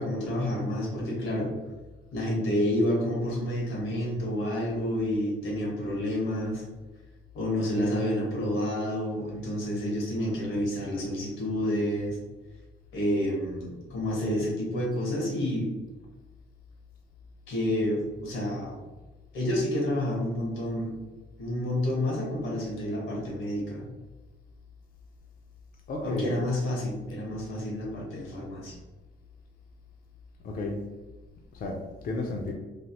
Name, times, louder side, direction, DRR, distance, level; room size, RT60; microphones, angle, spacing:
voice 1, 0.0-1.5 2.1-6.6 7.3-12.2 12.9-15.7 17.5-18.8 19.3-20.9 21.4-23.9 26.0-28.8, left 1 dB, 85° left, -2 dB, 1.1 m, -29 dB
voice 2, 25.9-26.4 30.4-30.9 31.5-32.5, left 2 dB, 45° left, 0 dB, 0.5 m, -32 dB
3.3 x 2.0 x 2.7 m, 1.2 s
cardioid pair, 90°, 20 cm